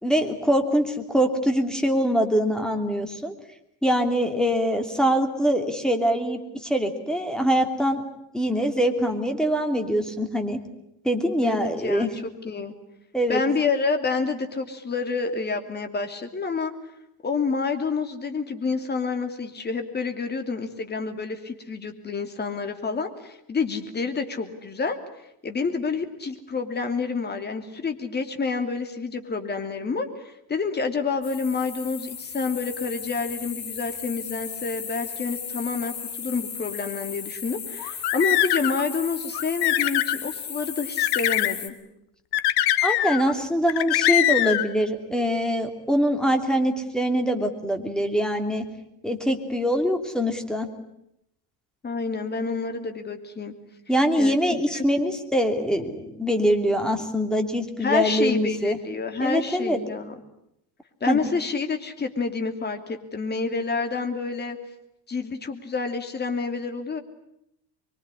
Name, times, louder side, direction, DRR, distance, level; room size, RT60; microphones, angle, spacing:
voice 1, 0.0-3.3 3.8-8.0 8.3-10.6 11.0-12.1 13.1-13.4 42.8-48.6 49.0-50.7 53.9-58.8 59.2-59.8 61.1-61.2, equal, ahead, 5 dB, 3.0 m, -23 dB
voice 2, 11.4-12.7 13.3-16.7 17.2-25.0 25.4-41.8 51.8-53.5 54.2-54.8 57.8-60.1 61.0-64.6 65.1-67.0, left 4 dB, 25° left, 6 dB, 2.8 m, -28 dB
sound 1, 31.2-41.7, left 7 dB, 40° left, 3.6 m, -36 dB
sound 2, 37.8-38.8 39.3-40.2 41.0-41.6 42.3-43.3 43.7-44.7, left 13 dB, 65° left, 1.5 m, -22 dB
25.0 x 23.0 x 9.9 m, 0.79 s
cardioid pair, 135°, 42 cm